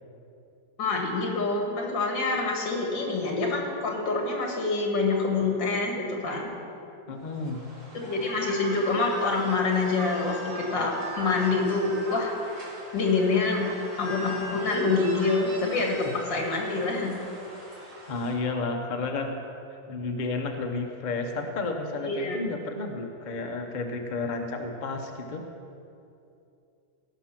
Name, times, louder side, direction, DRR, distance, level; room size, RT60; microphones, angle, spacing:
voice 1, 0.8-6.5 7.9-12.6 12.9-13.7 14.0-17.1 22.0-22.4, left 3 dB, 75° left, 0 dB, 2.5 m, -26 dB
voice 2, 7.1-7.6 15.6-15.7 16.0-16.2 18.1-19.4 19.9-25.4, left 3 dB, 35° left, 4 dB, 0.7 m, -32 dB
sound 1, 7.2-18.3, right 1 dB, 85° right, 3.7 m, -40 dB
17.5 x 6.2 x 5.9 m, 2.7 s
omnidirectional pair, 2.0 m